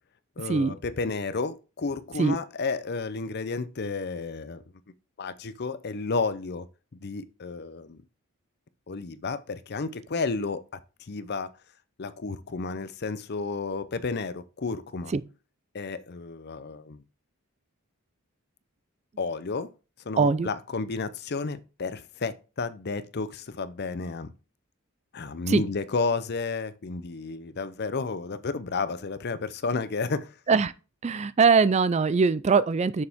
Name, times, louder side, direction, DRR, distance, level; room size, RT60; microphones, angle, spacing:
voice 1, 0.4-4.6 5.2-6.7 6.9-8.0 8.9-10.6 11.0-11.5 12.0-15.1 15.7-17.0 19.2-19.7 20.0-24.3 25.1-30.4, left 4 dB, 50° left, 0.6 m, -32 dB
voice 2, 20.2-20.5 25.5-25.6 30.5-30.7 31.0-33.0, right 5 dB, 30° right, 0.3 m, -22 dB
7.0 x 6.6 x 3.6 m
head